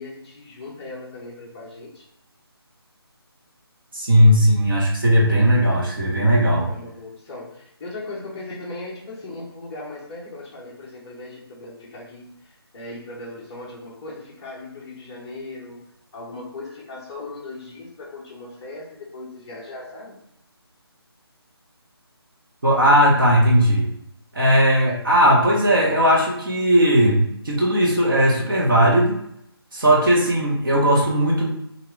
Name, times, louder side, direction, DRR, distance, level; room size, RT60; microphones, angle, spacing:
voice 1, 0.0-2.1 6.6-15.8 16.1-20.2, left 2 dB, 10° left, -6 dB, 0.6 m, -38 dB
voice 2, 3.9-6.7 22.6-23.9 24.3-29.1 29.7-31.5, equal, 55° right, -3 dB, 1.3 m, -17 dB
3.5 x 2.8 x 3.4 m, 0.76 s
figure-of-eight pair, 165°, 14 cm